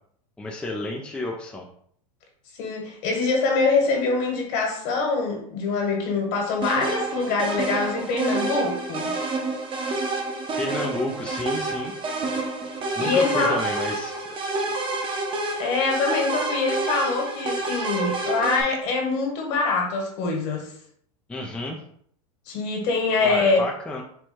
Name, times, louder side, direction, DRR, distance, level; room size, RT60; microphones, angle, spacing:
voice 1, 0.4-1.6 10.6-11.9 13.0-14.4 21.3-21.8 23.2-24.0, left 2 dB, 5° left, 0 dB, 0.4 m, -31 dB
voice 2, 2.6-9.1 13.0-13.6 15.6-20.7 22.5-23.6, left 3 dB, 55° left, 1 dB, 1.5 m, -24 dB
sound 1, 6.6-18.6, right 3 dB, 25° right, 0.8 m, -28 dB
4.5 x 2.2 x 4.3 m, 0.63 s
supercardioid pair, 130°, 19 cm